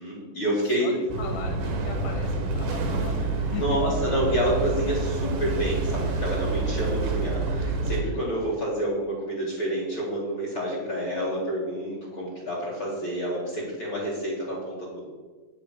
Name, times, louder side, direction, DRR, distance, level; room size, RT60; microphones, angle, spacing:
voice 1, 0.0-0.9 3.5-15.1, equal, 45° left, -6 dB, 2.5 m, -28 dB
voice 2, 0.6-3.9 8.1-8.6, left 6 dB, 80° left, 3 dB, 2.2 m, -39 dB
sound 1, 1.1-8.0, right 3 dB, 65° right, 1.6 m, -27 dB
9.1 x 4.7 x 6.0 m, 1.4 s
omnidirectional pair, 3.7 m